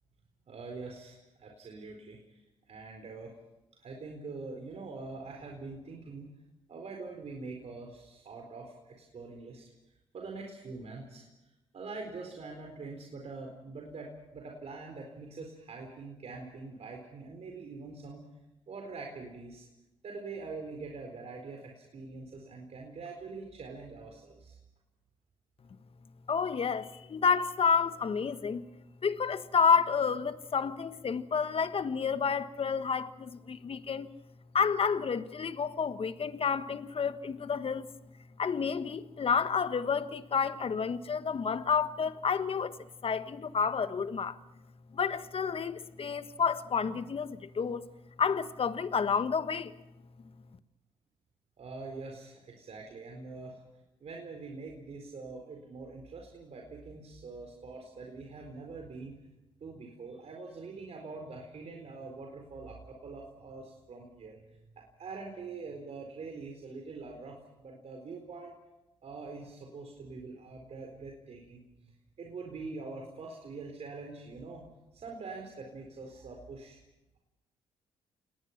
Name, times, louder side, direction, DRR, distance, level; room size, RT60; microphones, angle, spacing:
voice 1, 0.5-2.4 2.7-3.4 3.8-6.3 6.7-11.3 11.7-18.2 18.7-19.7 20.0-24.6 51.6-53.6 54.0-59.2 59.6-68.5 69.0-71.9 72.2-74.6 74.9-76.8, right 3 dB, 55° right, 4.4 m, -44 dB
voice 2, 26.3-28.6 29.0-34.1 34.5-37.9 38.4-42.7 43.0-44.4 44.9-47.9 48.2-49.7, left 6 dB, 45° left, 1.4 m, -30 dB
28.5 x 19.0 x 6.0 m
supercardioid pair, 55°, 13 cm